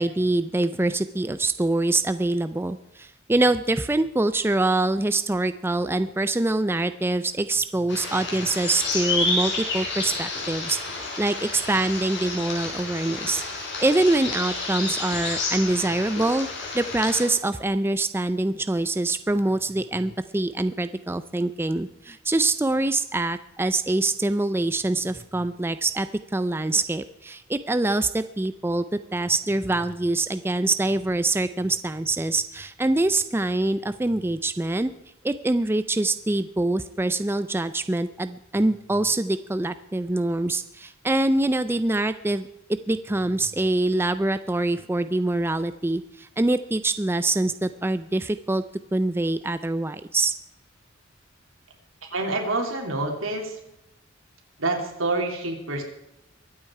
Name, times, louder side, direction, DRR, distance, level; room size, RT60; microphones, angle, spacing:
voice 1, 0.0-16.5 16.7-26.1 26.3-28.8 29.1-34.9 35.2-42.5 42.9-48.6 48.9-50.3, right 2 dB, 10° right, 12 dB, 0.4 m, -24 dB
sound 1, 7.9-17.3, left 3 dB, 60° left, 5.3 m, -30 dB
voice 2, 52.1-53.6 54.6-55.8, right 2 dB, 80° right, 2 dB, 3.3 m, -27 dB
23.0 x 8.8 x 4.8 m, 0.86 s
head